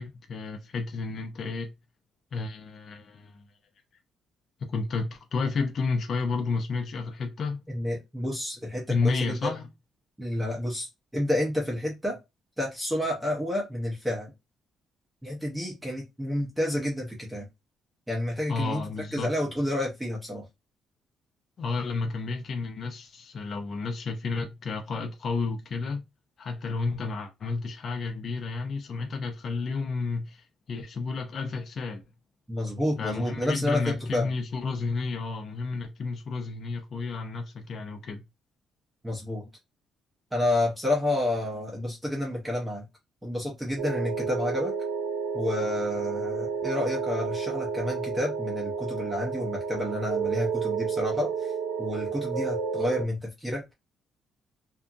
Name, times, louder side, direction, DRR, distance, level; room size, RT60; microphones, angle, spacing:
voice 1, 0.0-1.7 2.3-3.4 4.6-7.6 8.9-9.7 18.5-19.3 21.6-26.0 26.4-32.0 33.0-38.2, left 4 dB, 40° left, 0.5 m, -31 dB
voice 2, 7.7-9.5 10.2-12.2 12.6-14.3 15.2-17.5 18.1-18.8 19.1-20.5 32.5-34.3 39.0-39.5 40.3-42.8 43.2-44.7 45.3-51.5 51.8-53.7, left 1 dB, 5° right, 0.6 m, -30 dB
sound 1, 43.8-53.0, right 5 dB, 65° right, 0.4 m, -31 dB
2.7 x 2.5 x 2.4 m
cardioid pair, 170°, 0 cm